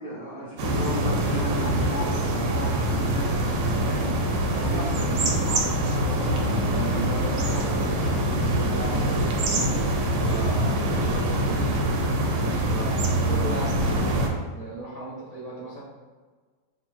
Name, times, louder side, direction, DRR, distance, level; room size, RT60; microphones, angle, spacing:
voice 1, 0.0-3.3 3.8-4.1 4.5-6.4 6.7-9.8 10.2-11.8 12.3-14.2 14.5-15.8, right 1 dB, 40° right, -9 dB, 0.5 m, -36 dB
sound 1, 0.6-14.3, right 1 dB, 75° right, 1.3 m, -24 dB
3.0 x 2.7 x 4.5 m, 1.4 s
omnidirectional pair, 2.1 m